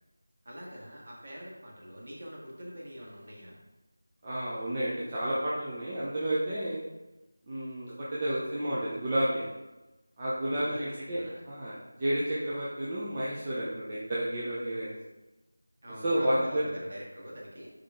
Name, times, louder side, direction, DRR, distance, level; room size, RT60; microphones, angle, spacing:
voice 1, 0.4-3.6 10.5-11.4 15.8-17.7, equal, 45° right, -4 dB, 1.9 m, -44 dB
voice 2, 4.2-6.8 7.5-9.5 10.2-14.9 16.0-16.7, right 1 dB, 25° right, -8 dB, 0.9 m, -31 dB
5.5 x 5.2 x 3.8 m, 1.1 s
figure-of-eight pair, 170°, 0 cm